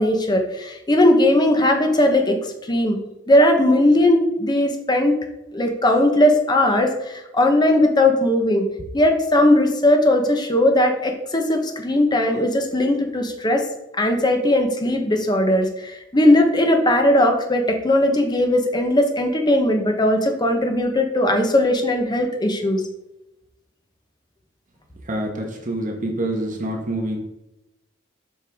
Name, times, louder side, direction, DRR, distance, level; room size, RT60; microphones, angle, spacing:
voice 1, 0.0-2.4 2.7-3.0 3.3-5.1 5.5-8.7 8.9-13.6 13.9-22.8, left 1 dB, 20° left, 4 dB, 0.9 m, -18 dB
voice 2, 25.1-27.2, right 1 dB, 40° right, 1 dB, 1.3 m, -26 dB
7.6 x 5.6 x 3.5 m, 0.92 s
head